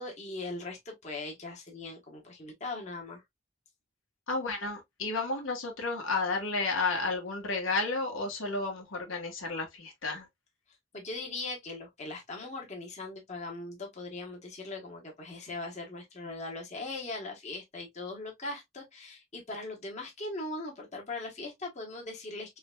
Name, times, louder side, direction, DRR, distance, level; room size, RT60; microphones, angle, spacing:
voice 1, 0.0-3.2 10.9-22.6, left 2 dB, 35° left, 1.1 m, -40 dB
voice 2, 4.3-10.3, left 3 dB, 90° left, 1.4 m, -32 dB
3.8 x 3.5 x 2.2 m
head